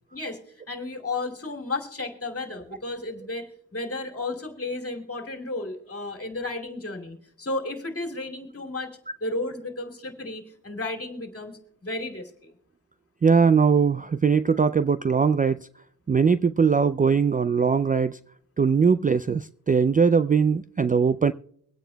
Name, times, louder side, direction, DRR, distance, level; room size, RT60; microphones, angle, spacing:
voice 1, 0.1-12.5, left 2 dB, 35° left, 2.6 m, -33 dB
voice 2, 13.2-15.6 16.1-18.2 18.6-21.3, right 5 dB, 25° right, 0.3 m, -20 dB
23.5 x 8.9 x 2.2 m
cardioid pair, 55°, 39 cm